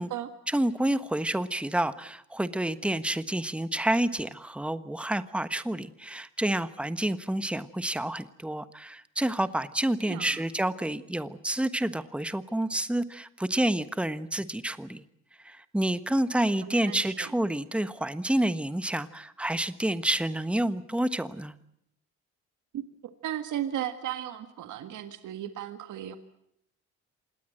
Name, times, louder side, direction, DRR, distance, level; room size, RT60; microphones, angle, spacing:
voice 1, 0.5-15.0 15.4-21.6, right 1 dB, 5° right, 12 dB, 1.3 m, -29 dB
voice 2, 10.0-10.4 16.7-17.3 22.7-22.8 23.2-26.2, right 11 dB, 80° right, 9 dB, 1.8 m, -35 dB
26.5 x 19.0 x 7.8 m, 0.74 s
cardioid pair, 90°, 30 cm